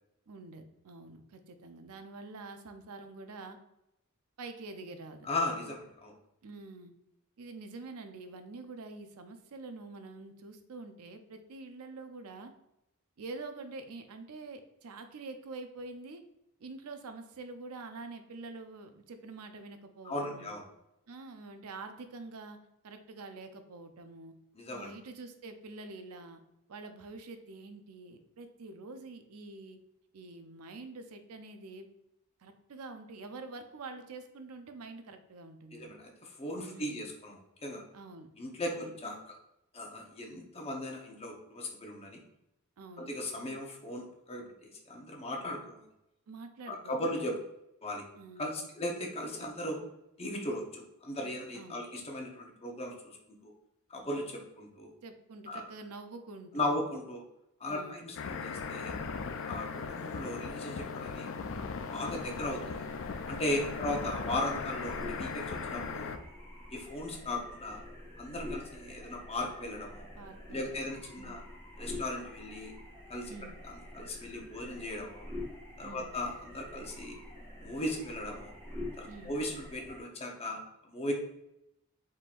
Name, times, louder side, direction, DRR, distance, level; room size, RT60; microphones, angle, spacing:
voice 1, 0.3-3.6 4.4-5.3 6.4-6.9 7.4-12.5 13.2-16.2 16.6-20.5 21.1-22.6 22.8-24.4 24.7-26.4 26.7-29.8 30.1-31.9 32.4-36.0 36.6-37.1 37.9-38.3 38.7-39.0 42.8-43.1 46.3-47.2 48.2-48.7 51.5-51.8 55.0-56.8 57.7-58.0 63.5-63.8 70.1-71.5 73.3-73.6 75.8-76.1 79.1-79.4, right 3 dB, 75° right, 7 dB, 0.5 m, -46 dB
voice 2, 5.2-6.1 20.0-20.6 24.6-24.9 35.7-37.8 38.4-39.3 39.7-42.2 43.0-45.8 46.7-47.4 47.8-48.0 48.4-49.8 50.2-53.2 53.4-53.5 53.9-54.9 55.5-55.6 56.5-57.2 57.6-58.9 59.4-61.3 61.9-62.8 63.3-66.1 66.7-67.8 68.2-70.1 70.5-71.4 71.8-72.7 73.1-73.3 73.7-75.3 75.8-77.2 77.6-78.5 79.0-80.6 80.9-81.1, left 1 dB, 25° left, 1 dB, 0.7 m, -37 dB
sound 1, 58.2-66.2, left 5 dB, 60° left, 0.4 m, -38 dB
sound 2, 62.1-80.0, left 1 dB, 10° left, 1.3 m, -47 dB
4.4 x 3.7 x 2.5 m, 0.85 s
head